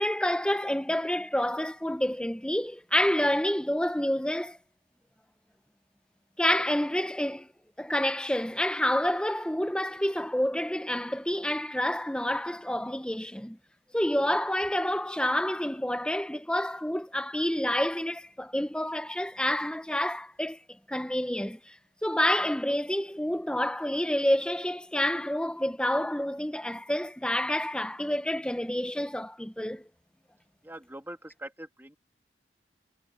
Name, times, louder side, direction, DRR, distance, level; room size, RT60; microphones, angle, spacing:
voice 1, 0.0-4.6 6.4-7.5 7.8-13.6 13.9-20.6 20.9-21.8 22.0-29.9, left 1 dB, 5° left, 0.8 m, -28 dB
voice 2, 30.6-32.0, right 1 dB, 10° right, 2.9 m, -43 dB
head